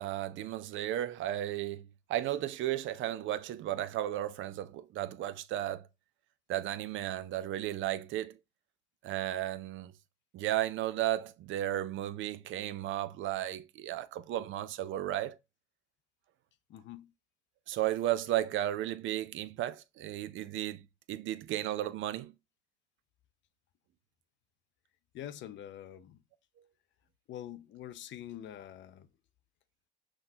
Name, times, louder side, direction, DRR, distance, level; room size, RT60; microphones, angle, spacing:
voice 1, 0.0-5.9 6.5-8.4 9.0-9.9 10.3-15.4 17.7-20.8 21.1-22.3, right 13 dB, 80° right, 0.4 m, -34 dB
voice 2, 16.7-17.1 25.1-26.2 27.3-29.1, left 11 dB, 70° left, 0.4 m, -45 dB
5.9 x 2.3 x 2.6 m
cardioid pair, 90°, 20 cm